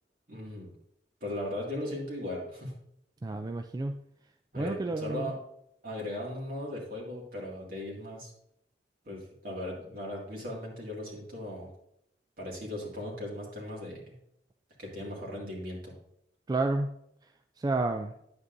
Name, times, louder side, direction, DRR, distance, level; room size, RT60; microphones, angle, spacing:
voice 1, 0.3-0.7 1.2-2.7 4.5-5.4 5.8-8.3 9.1-11.7 12.4-14.1 14.8-15.9, left 1 dB, 50° right, -3 dB, 2.2 m, -38 dB
voice 2, 3.2-4.0 4.5-5.3 16.5-16.9 17.6-18.1, right 2 dB, 20° right, 6 dB, 0.3 m, -30 dB
9.8 x 8.0 x 2.6 m, 0.75 s
head